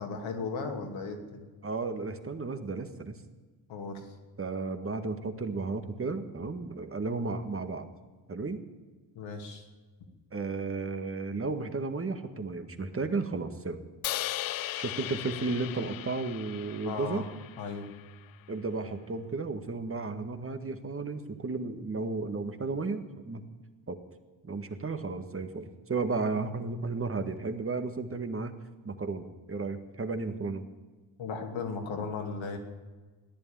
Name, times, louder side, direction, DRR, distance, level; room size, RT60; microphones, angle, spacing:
voice 1, 0.0-1.5 3.7-4.1 9.1-9.6 16.8-17.3 17.6-17.9 31.2-32.6, left 4 dB, 65° left, 3 dB, 2.7 m, -36 dB
voice 2, 1.6-3.2 4.4-7.9 8.3-8.6 10.3-13.8 14.8-17.3 18.5-23.4 23.9-24.0 24.4-28.5 28.9-30.6, right 3 dB, 25° right, 8 dB, 1.7 m, -33 dB
Crash cymbal, 14.0-18.2, left 15 dB, 45° left, 0.5 m, -37 dB
15.0 x 11.0 x 8.8 m, 1.3 s
hypercardioid pair, 50°, 50 cm